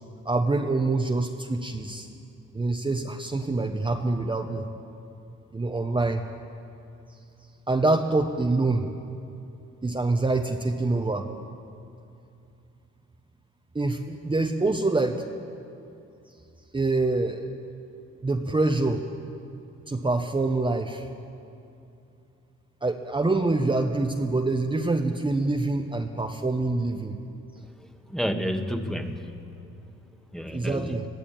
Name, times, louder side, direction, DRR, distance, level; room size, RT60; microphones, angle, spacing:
voice 1, 0.2-2.1 2.5-4.7 5.5-6.2 7.7-8.9 9.8-11.3 13.7-15.2 16.7-17.4 18.2-19.1 19.9-21.1 22.8-27.2 30.5-31.0, right 2 dB, 15° right, 2 dB, 1.1 m, -25 dB
voice 2, 27.8-29.5 30.3-31.0, equal, ahead, 5 dB, 1.4 m, -31 dB
21.5 x 14.0 x 8.8 m, 2.7 s
cardioid pair, 90°, 30 cm